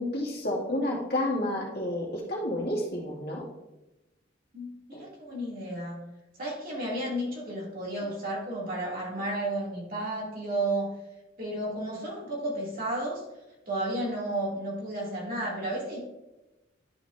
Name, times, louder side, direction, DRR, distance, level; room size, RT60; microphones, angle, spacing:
voice 1, 0.0-3.5 4.9-5.0, left 1 dB, 55° left, -3 dB, 2.1 m, -30 dB
voice 2, 4.5-6.0 6.4-10.9 11.4-13.2 13.7-16.0, right 1 dB, 50° right, -5 dB, 2.6 m, -32 dB
11.5 x 4.7 x 2.7 m, 1.0 s
head